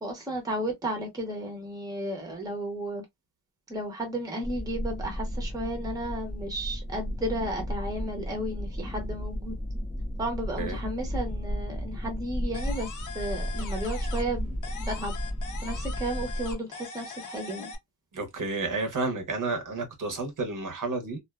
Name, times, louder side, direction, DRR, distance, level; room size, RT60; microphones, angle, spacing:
voice 1, 0.0-3.0 3.7-9.6 10.2-15.1 15.6-17.7, right 1 dB, 10° right, 0.7 m, -33 dB
sound 1, 4.4-16.6, equal, 15° left, 1.0 m, -34 dB
sound 2, 12.5-14.4 14.6-17.8, left 6 dB, 50° left, 0.5 m, -41 dB
voice 2, 18.1-21.2, right 3 dB, 50° right, 0.8 m, -31 dB
2.4 x 2.3 x 2.2 m
wide cardioid pair, 165°, 41 cm